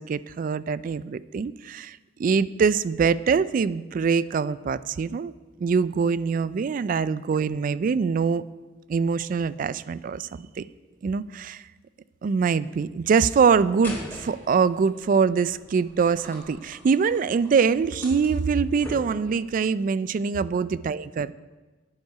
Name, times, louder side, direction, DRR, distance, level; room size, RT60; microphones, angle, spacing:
voice 1, 0.0-5.3 5.6-8.4 8.9-10.6 11.0-11.6 12.2-21.3, right 5 dB, 45° right, 18 dB, 0.3 m, -24 dB
sound 1, 13.8-19.6, left 1 dB, 10° left, 4.1 m, -42 dB
9.6 x 9.3 x 5.6 m, 1.3 s
head